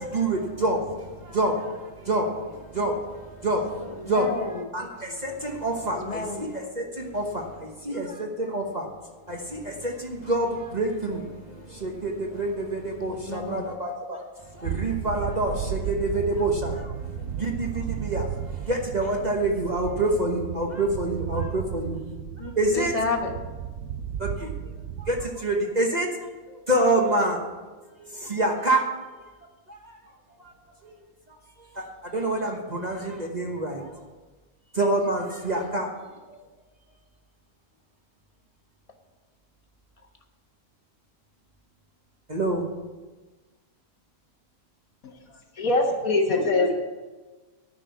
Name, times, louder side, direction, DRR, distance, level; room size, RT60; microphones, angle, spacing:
voice 1, 0.1-0.8 1.3-1.5 2.1-2.2 2.7-2.9 3.4-3.6 4.1-4.3 4.7-4.9 5.2-6.2 6.8-7.4 7.9-8.8 9.3-11.2 11.8-14.2 14.6-16.8 17.4-17.7 18.0-18.3 18.7-22.0 22.6-22.9 24.2-24.3 25.1-25.2 25.4-26.1 26.7-27.4 28.3-28.8 32.1-33.8 34.8-35.9 42.3-42.6 46.3-46.4, right 2 dB, 30° right, 1 dB, 1.1 m, -26 dB
voice 2, 3.8-4.7 5.8-6.5 13.0-13.7 22.4-23.3 35.5-35.6, left 4 dB, 25° left, 3 dB, 1.2 m, -32 dB
sound 1, 14.6-25.3, right 9 dB, 70° right, 1.0 m, -34 dB
voice 3, 45.6-46.7, left 2 dB, 65° left, 2 dB, 1.9 m, -22 dB
10.5 x 6.1 x 8.4 m, 1.3 s
omnidirectional pair, 1.6 m